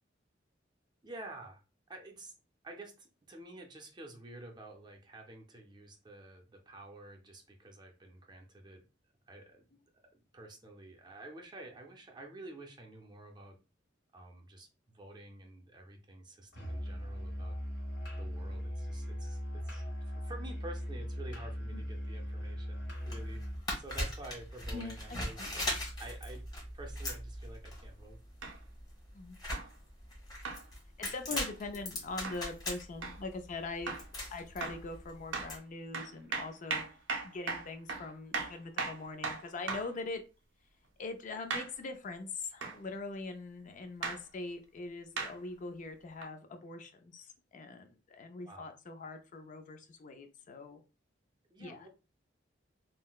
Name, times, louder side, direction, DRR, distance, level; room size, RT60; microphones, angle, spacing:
voice 1, 1.0-1.6 1.9-2.3 2.6-8.8 9.3-9.7 10.1-13.6 14.1-17.5 18.2-23.4 23.7-26.4 26.7-28.2 31.3-31.4 48.4-48.7 51.5-51.9, right 2 dB, 25° right, 2 dB, 0.5 m, -50 dB
Musical instrument, 16.5-23.7, equal, 70° left, 1.3 m, -39 dB
sound 1, 22.9-35.6, left 1 dB, 25° left, 1.2 m, -40 dB
voice 2, 24.7-25.5 29.1-29.4 31.0-34.0 34.3-36.8 37.2-40.2 41.0-50.8 51.6-51.9, left 3 dB, 45° left, 6 dB, 0.4 m, -42 dB
sound 2, 28.4-28.6 29.5-29.7 30.4-30.6 31.4-31.6 32.2-32.4 33.0-33.2 33.9-34.1 34.6-34.9 35.3-35.5 35.9-40.0 41.5-41.7 42.6-42.8 44.0-44.2 45.2-45.4 46.2-46.3, right 4 dB, 80° right, 0.6 m, -37 dB
3.8 x 2.1 x 2.3 m, 0.30 s
head